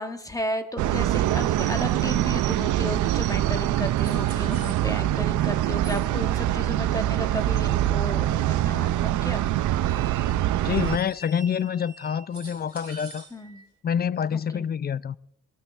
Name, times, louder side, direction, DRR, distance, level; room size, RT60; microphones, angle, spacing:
voice 1, 0.0-9.4 13.3-13.6 14.3-14.7, left 1 dB, 10° left, 1.7 m, -34 dB
sound 1, 0.8-11.0, right 13 dB, 75° right, 0.6 m, -24 dB
sound 2, 4.0-5.2 5.8-7.2 9.5-13.7, right 3 dB, 20° right, 5.2 m, -46 dB
voice 2, 10.6-13.3 13.8-15.2, left 8 dB, 30° left, 0.4 m, -27 dB
22.5 x 13.0 x 3.4 m
cardioid pair, 90°, 30 cm